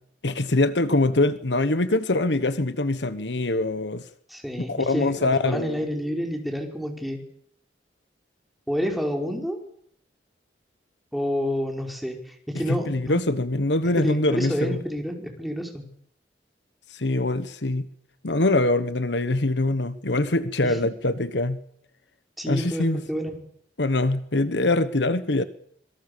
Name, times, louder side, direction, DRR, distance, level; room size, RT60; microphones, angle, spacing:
voice 1, 0.2-4.0 4.7-5.8 12.7-14.8 16.9-17.9 18.2-21.6 22.5-23.0 23.8-25.4, left 2 dB, 75° left, 13 dB, 1.3 m, -23 dB
voice 2, 4.3-7.2 8.7-9.6 11.1-13.2 13.9-15.8 20.6-20.9 22.4-23.4, equal, ahead, 2 dB, 5.0 m, -29 dB
26.0 x 23.0 x 7.0 m, 0.66 s
head